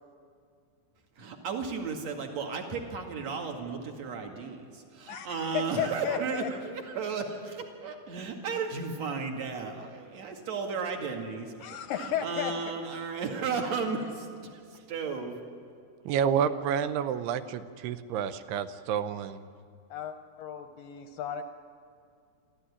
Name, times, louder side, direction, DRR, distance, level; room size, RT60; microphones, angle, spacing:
voice 1, 1.2-11.5 12.0-15.4, right 5 dB, 45° right, 3 dB, 2.8 m, -34 dB
voice 2, 5.1-6.5 11.6-12.5 19.9-21.4, left 9 dB, 75° left, 8 dB, 2.2 m, -34 dB
voice 3, 16.1-19.4, right 8 dB, 85° right, 12 dB, 2.8 m, -29 dB
27.0 x 13.0 x 9.9 m, 2.4 s
omnidirectional pair, 4.7 m